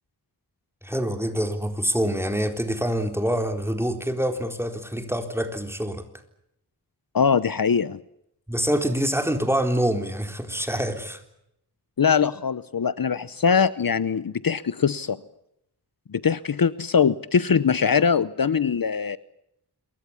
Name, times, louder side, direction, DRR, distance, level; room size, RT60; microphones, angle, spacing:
voice 1, 0.8-6.0 8.5-11.2, equal, 5° right, 3.9 m, -26 dB
voice 2, 7.1-8.0 12.0-15.2 16.1-19.2, left 6 dB, 60° left, 0.9 m, -22 dB
27.0 x 23.5 x 7.2 m
wide cardioid pair, 80°, 39 cm